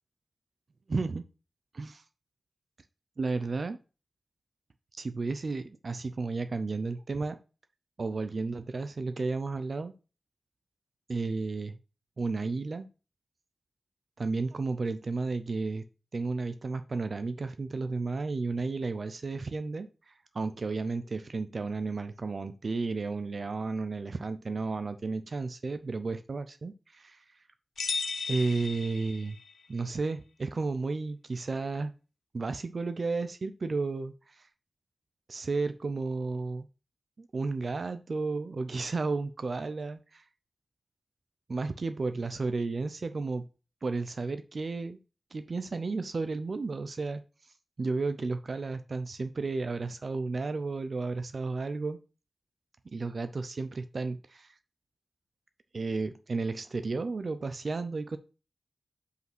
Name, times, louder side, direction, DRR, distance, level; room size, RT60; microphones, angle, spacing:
voice 1, 0.9-1.2 1.7-2.0 3.2-3.8 4.9-7.4 8.0-9.9 11.1-11.8 12.2-12.9 14.2-15.9 16.1-27.3 28.3-29.4 29.7-31.9 32.3-34.5 35.3-36.7 37.2-40.2 41.5-43.5 43.8-45.0 45.3-47.2 47.8-52.0 52.9-54.5 55.7-58.2, right 3 dB, 50° right, 10 dB, 0.5 m, -33 dB
sound 1, 27.8-29.6, left 5 dB, 90° left, 0.9 m, -35 dB
5.5 x 5.0 x 6.0 m, 0.34 s
wide cardioid pair, 120°, 0 cm